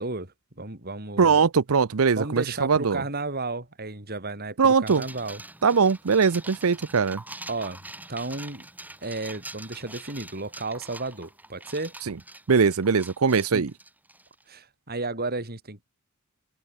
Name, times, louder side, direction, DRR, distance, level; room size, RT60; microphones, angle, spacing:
voice 1, 0.0-1.4 2.2-5.4 7.5-7.8 8.1-8.7 9.0-11.9 13.5-13.7 14.5-15.9, right 3 dB, 45° right, 5.8 m, -33 dB
voice 2, 1.2-3.0 4.6-5.0 5.6-7.2 12.1-12.2 12.5-13.7, right 5 dB, 75° right, 0.7 m, -21 dB
sound 1, 4.9-14.4, right 2 dB, 10° right, 6.3 m, -44 dB
open air
head